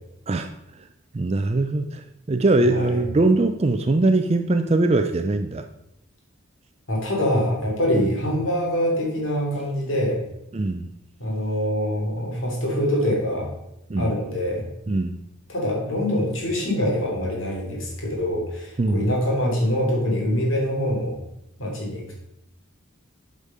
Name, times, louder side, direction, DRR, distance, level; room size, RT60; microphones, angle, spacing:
voice 1, 1.1-5.6 7.9-8.1 10.5-10.9 13.9-14.1 14.9-15.2 18.8-19.1, right 2 dB, 30° right, 7 dB, 0.4 m, -21 dB
voice 2, 2.6-3.0 6.9-10.2 11.2-13.5 14.0-14.7 15.5-21.2 21.6-22.2, equal, 70° left, -2 dB, 3.0 m, -24 dB
8.3 x 5.2 x 5.4 m, 0.86 s
head